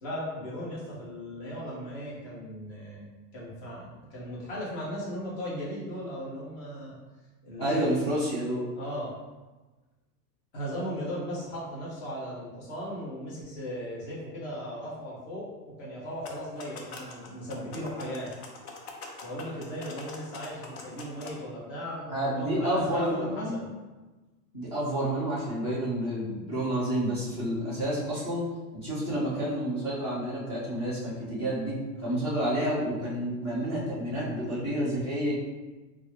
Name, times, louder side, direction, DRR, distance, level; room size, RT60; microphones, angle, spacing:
voice 1, 0.0-3.0 3.3-6.9 7.4-7.9 8.8-9.1 10.5-15.5 15.8-18.3 19.2-23.7 32.0-32.2, equal, 45° left, -7 dB, 1.4 m, -37 dB
voice 2, 7.6-8.7 22.1-23.6 24.5-28.5 28.7-35.3, right 1 dB, 20° left, -10 dB, 0.3 m, -29 dB
sound 1, 16.1-21.3, left 3 dB, 70° left, 0.8 m, -44 dB
4.0 x 2.3 x 3.0 m, 1.2 s
supercardioid pair, 165°, 50 cm